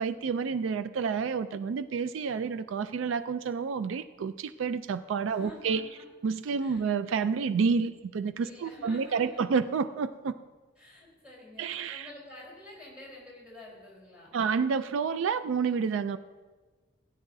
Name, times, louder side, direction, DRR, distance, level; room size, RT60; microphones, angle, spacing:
voice 1, 0.0-5.9 6.2-10.4 11.6-12.1 14.3-16.2, right 5 dB, 80° right, 13 dB, 0.3 m, -29 dB
voice 2, 5.3-6.0 6.6-6.9 8.3-9.4 10.8-14.4, left 1 dB, 5° right, -6 dB, 3.9 m, -49 dB
17.0 x 9.8 x 2.7 m, 1.4 s
head